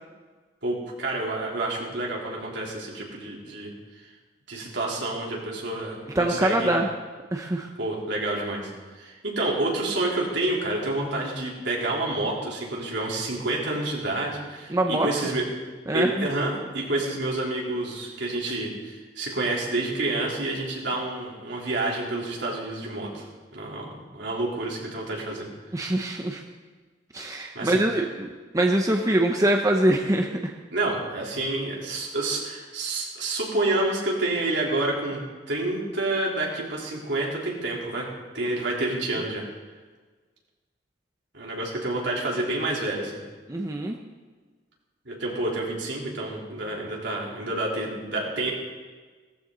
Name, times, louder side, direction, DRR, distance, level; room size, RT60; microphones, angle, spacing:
voice 1, 0.6-3.7 4.0-4.1 4.5-6.8 7.8-8.7 9.0-15.5 15.9-23.3 23.5-25.5 27.5-27.8 30.7-35.2 35.5-38.1 38.3-39.4 41.3-43.2 45.1-48.5, right 2 dB, 70° right, -3 dB, 3.7 m, -28 dB
voice 2, 6.1-6.9 7.3-7.7 14.7-15.1 15.9-16.3 25.7-26.4 27.1-28.3 28.5-30.5 43.5-44.0, right 1 dB, 20° right, 2 dB, 0.8 m, -23 dB
17.0 x 14.5 x 4.0 m, 1.4 s
head